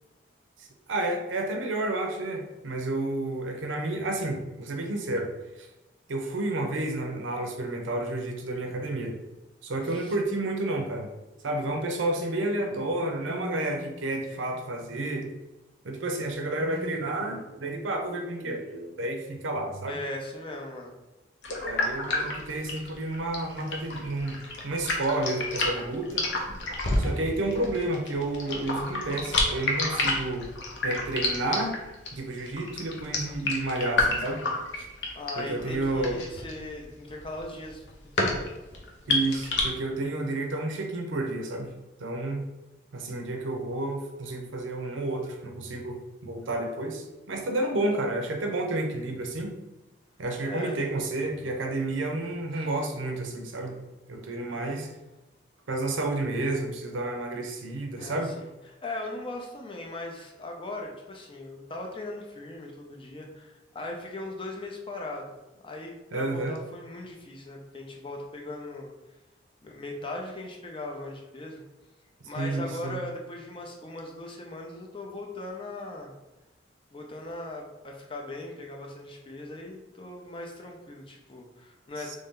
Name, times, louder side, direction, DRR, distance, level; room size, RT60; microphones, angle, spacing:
voice 1, 0.6-5.3 5.6-5.7 6.1-9.2 9.6-11.1 11.4-15.4 15.8-20.0 21.6-24.4 24.6-26.3 27.0-30.5 30.8-31.8 32.1-34.4 34.7-34.9 35.4-36.2 39.1-41.7 42.0-42.4 42.9-49.5 50.2-53.8 54.1-54.9 55.7-58.3 66.1-66.5 72.4-73.0 82.0-82.2, right 2 dB, 90° right, 3 dB, 0.6 m, -30 dB
voice 2, 9.8-10.1 19.9-20.9 35.1-37.8 38.2-38.5 50.5-50.8 52.5-52.7 58.0-65.2 65.5-68.9 69.6-71.6 72.2-76.1 76.9-82.2, left 2 dB, 25° left, 1 dB, 0.5 m, -39 dB
sound 1, 21.4-39.6, left 2 dB, 70° left, 0.7 m, -30 dB
3.2 x 2.7 x 3.6 m, 1.0 s
head